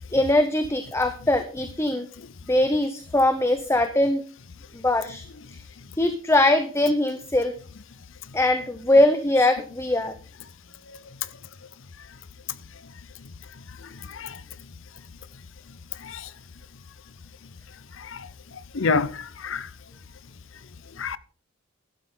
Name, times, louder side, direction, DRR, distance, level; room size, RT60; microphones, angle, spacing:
voice 1, 0.1-2.1 2.5-4.2 4.7-5.2 6.0-7.5 8.3-10.1, left 1 dB, 10° left, 0.8 m, -21 dB
voice 2, 18.7-19.7 21.0-21.2, left 4 dB, 60° left, 0.7 m, -28 dB
12.5 x 11.5 x 3.8 m
head